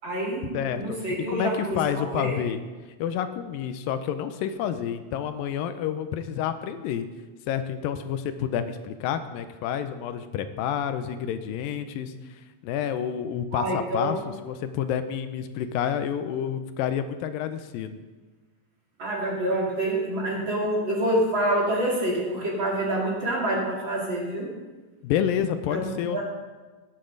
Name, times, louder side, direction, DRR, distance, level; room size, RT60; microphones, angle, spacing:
voice 1, 0.0-2.4 13.5-14.2 19.0-24.5 25.7-26.2, right 1 dB, 35° right, -3 dB, 2.8 m, -27 dB
voice 2, 0.5-2.6 3.0-7.1 7.5-12.1 12.6-18.0 25.0-26.2, left 9 dB, 85° left, 10 dB, 2.4 m, -29 dB
18.5 x 8.8 x 3.9 m, 1.3 s
omnidirectional pair, 4.0 m